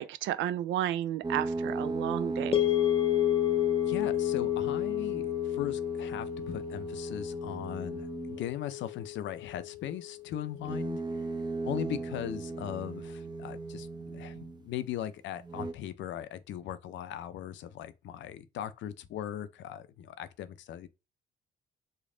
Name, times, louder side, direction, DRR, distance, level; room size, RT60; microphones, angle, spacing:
voice 1, 0.0-2.5, right 12 dB, 70° right, 0.4 m, -32 dB
sound 1, 1.2-8.6 10.5-14.7 15.4-15.7, right 3 dB, 20° right, 0.7 m, -37 dB
sound 2, 2.5-10.8, left 18 dB, 25° left, 0.6 m, -31 dB
voice 2, 3.8-11.0 11.6-20.9, left 10 dB, 70° left, 0.5 m, -39 dB
3.2 x 2.3 x 3.7 m
supercardioid pair, 65°, 20 cm